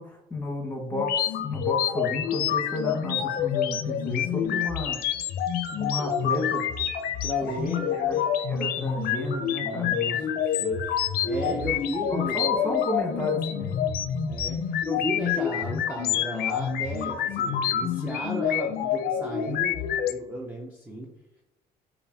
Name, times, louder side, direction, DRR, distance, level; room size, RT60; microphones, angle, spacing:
voice 1, 0.0-5.0 5.7-6.6 7.4-8.2 8.5-10.3 11.4-11.7 12.1-14.0, left 1 dB, 10° left, -2 dB, 1.3 m, -32 dB
sound 1, 0.9-20.1, left 9 dB, 65° left, 0.5 m, -27 dB
voice 2, 7.2-8.2 9.6-12.4 14.3-21.1, equal, 10° right, 0 dB, 0.6 m, -35 dB
5.1 x 2.5 x 2.7 m, 0.91 s
cardioid pair, 110°, 17 cm